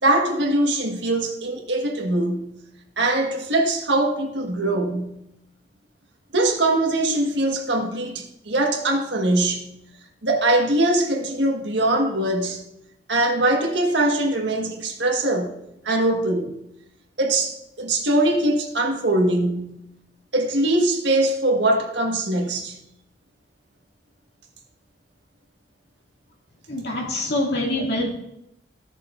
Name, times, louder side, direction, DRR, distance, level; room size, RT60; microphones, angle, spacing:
voice 1, 0.0-2.5 3.0-5.2 6.3-9.7 10.2-12.6 13.1-16.6 17.2-19.8 20.3-22.8, right 1 dB, 85° right, 1.6 m, -22 dB
voice 2, 26.7-28.1, left 1 dB, 65° left, 2.5 m, -25 dB
15.5 x 6.7 x 2.6 m
head